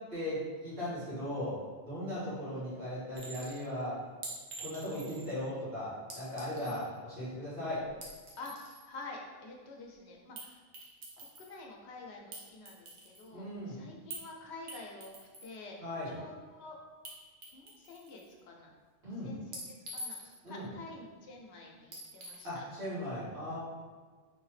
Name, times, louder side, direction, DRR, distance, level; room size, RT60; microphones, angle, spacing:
voice 1, 0.1-1.6 1.8-4.0 4.6-7.8 13.3-13.8 15.8-16.1 19.0-19.3 20.4-20.7 22.4-23.6, left 1 dB, 65° right, -11 dB, 2.0 m, -38 dB
Chink clink, 3.2-3.6 4.2-5.3 6.1-6.8 7.9-8.8 10.4-10.5 10.7-11.6 12.3-13.3 14.1-14.3 14.7-15.5 17.0-17.1 17.4-18.3 19.5-20.5 21.9-22.5, right 1 dB, 85° right, 1.1 m, -46 dB
voice 2, 8.4-10.6 11.2-15.2 15.4-15.8 16.0-16.8 17.5-18.7 19.2-20.2 20.5-22.7, left 2 dB, 80° left, 0 dB, 0.9 m, -48 dB
4.1 x 2.7 x 3.2 m, 1.4 s
omnidirectional pair, 1.1 m